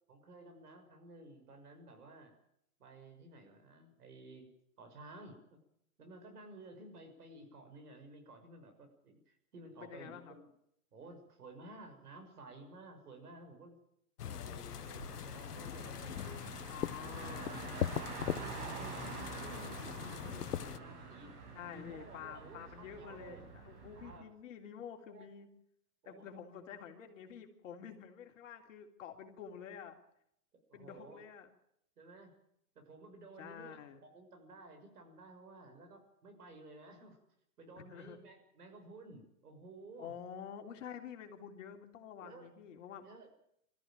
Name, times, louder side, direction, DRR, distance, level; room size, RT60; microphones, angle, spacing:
voice 1, 0.1-2.3 2.8-4.5 4.8-5.6 6.0-10.5 10.9-13.8 14.2-16.5 17.1-19.0 19.4-21.3 21.6-23.4 23.9-24.2 25.1-25.3 26.0-26.2 30.7-31.2 32.0-32.3 32.7-33.8 34.1-37.2 37.6-40.1 42.2-42.5 43.0-43.3, right 2 dB, 75° right, 5 dB, 6.4 m, -54 dB
voice 2, 9.8-10.3 16.7-17.6 21.5-25.5 26.0-29.9 30.7-31.5 33.4-34.0 37.8-38.2 40.0-43.0, left 8 dB, 55° left, 3 dB, 3.5 m, -49 dB
sound 1, 14.2-20.8, left 10 dB, 85° left, 0.9 m, -41 dB
Car, 14.6-24.2, right 5 dB, 50° right, 6.2 m, -47 dB
22.0 x 14.0 x 9.1 m, 0.74 s
hypercardioid pair, 150°, 46 cm